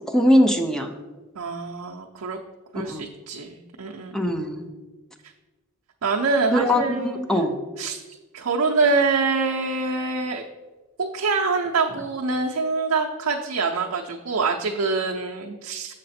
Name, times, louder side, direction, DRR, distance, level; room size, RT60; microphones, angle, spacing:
voice 1, 0.1-0.9 2.7-3.1 4.1-4.7 6.5-7.5, equal, 5° left, 5 dB, 0.6 m, -21 dB
voice 2, 1.4-2.4 2.7-4.1 6.0-7.2 7.8-8.0 8.3-10.4 11.0-15.9, right 4 dB, 80° right, 0 dB, 0.6 m, -25 dB
6.6 x 6.5 x 4.2 m, 1.2 s
head